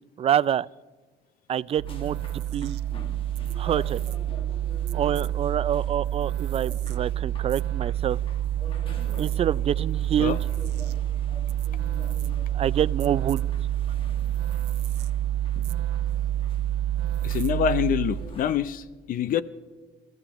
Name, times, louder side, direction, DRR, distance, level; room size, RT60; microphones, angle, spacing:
voice 1, 0.2-0.7 1.5-2.2 2.5-2.8 3.6-4.0 4.9-8.2 9.2-10.4 12.5-13.4, right 10 dB, 35° right, 0.4 m, -26 dB
sound 1, 1.8-18.3, right 12 dB, 80° right, 0.7 m, -28 dB
sound 2, 1.9-18.5, left 1 dB, 30° left, 1.8 m, -45 dB
voice 2, 17.2-19.4, left 9 dB, 55° left, 0.6 m, -26 dB
28.5 x 14.5 x 3.0 m
cardioid pair, 110°, 17 cm